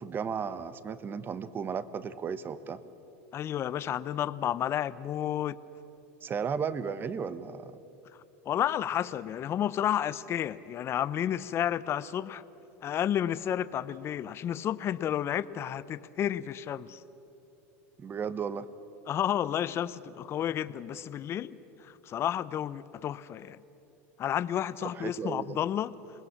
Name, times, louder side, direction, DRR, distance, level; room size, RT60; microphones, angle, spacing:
voice 1, 0.0-2.8 6.2-7.8 18.0-18.7 24.8-25.6, right 6 dB, 30° right, 15 dB, 1.0 m, -34 dB
voice 2, 3.3-5.6 8.5-12.4 12.8-17.0 19.1-21.6 21.8-23.6 24.2-25.9, left 10 dB, 35° left, 16 dB, 0.7 m, -31 dB
27.5 x 19.5 x 7.3 m, 3.0 s
supercardioid pair, 110°, 7 cm